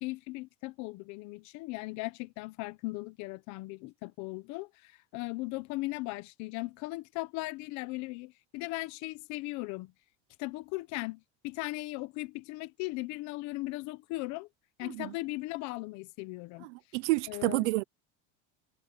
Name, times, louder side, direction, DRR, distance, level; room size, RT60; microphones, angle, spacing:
voice 1, 0.0-9.9 10.4-14.5 14.8-16.7 17.3-17.7, left 21 dB, 55° left, 1.4 m, -38 dB
voice 2, 14.8-15.1 16.6-17.8, right 21 dB, 85° right, 1.0 m, -30 dB
cardioid pair, 150°, 34 cm